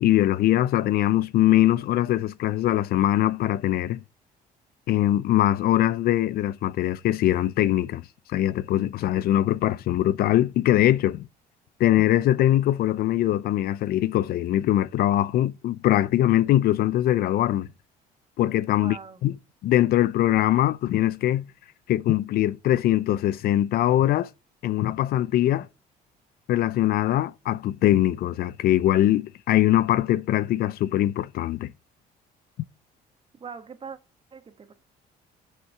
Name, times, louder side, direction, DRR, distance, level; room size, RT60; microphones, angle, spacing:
voice 1, 0.0-4.0 4.9-8.0 8.3-11.3 11.8-17.7 18.4-19.3 19.6-21.5 21.9-24.3 24.6-25.7 26.5-31.7, left 13 dB, 65° left, 0.5 m, -22 dB
voice 2, 18.8-19.2 33.4-34.0 34.3-34.7, right 5 dB, 30° right, 1.6 m, -41 dB
7.8 x 6.6 x 6.6 m
cardioid pair, 110°, 17 cm